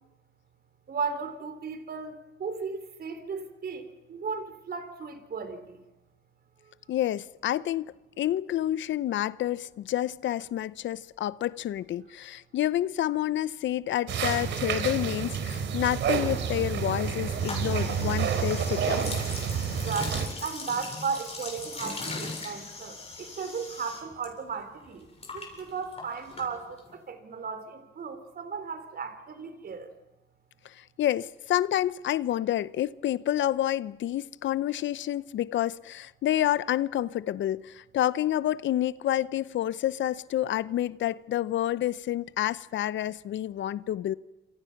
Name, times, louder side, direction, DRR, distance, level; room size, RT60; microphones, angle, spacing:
voice 1, 0.9-5.8 19.8-25.0 25.3-29.9, right 5 dB, 50° right, 3.7 m, -35 dB
voice 2, 6.9-19.2 30.6-44.1, left 12 dB, 70° left, 0.7 m, -29 dB
sound 1, 14.1-20.3, right 7 dB, 70° right, 3.1 m, -29 dB
sound 2, 17.4-24.3 24.5-26.9, left 3 dB, 30° left, 7.9 m, -39 dB
27.0 x 27.0 x 5.9 m
cardioid pair, 90°, 20 cm